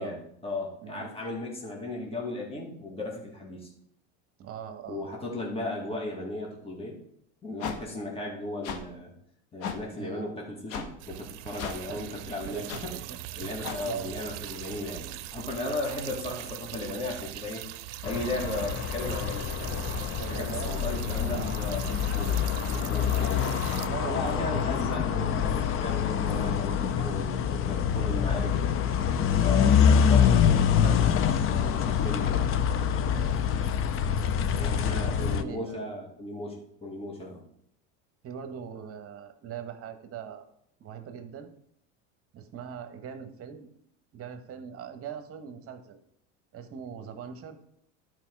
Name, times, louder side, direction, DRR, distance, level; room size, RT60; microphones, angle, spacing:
voice 1, 0.0-3.7 4.9-7.0 7.4-9.1 9.5-12.9 13.3-17.7 18.0-22.4 22.7-23.7 24.0-28.7 29.4-32.5 34.5-37.4, left 2 dB, 15° left, -1 dB, 2.1 m, -36 dB
voice 2, 4.4-5.0 10.0-10.3 11.9-12.0 12.5-13.2 13.8-14.1 16.1-16.2 20.2-20.9 21.3-22.0 23.6-24.7 29.4-29.7 33.0-33.6 34.6-35.8 38.2-40.4 40.8-41.5 42.3-43.7 44.1-46.0 46.5-47.6, right 8 dB, 40° right, 8 dB, 1.3 m, -41 dB
sound 1, 7.6-7.8 8.6-8.8 9.6-9.8 10.7-10.9 11.6-11.8 12.7-12.8 13.6-13.8, left 7 dB, 65° left, 1.5 m, -34 dB
sound 2, 11.0-23.9, right 14 dB, 75° right, 0.6 m, -40 dB
sound 3, 18.0-35.4, left 8 dB, 35° left, 0.7 m, -25 dB
11.5 x 4.8 x 4.7 m, 0.70 s
supercardioid pair, 105°, 36 cm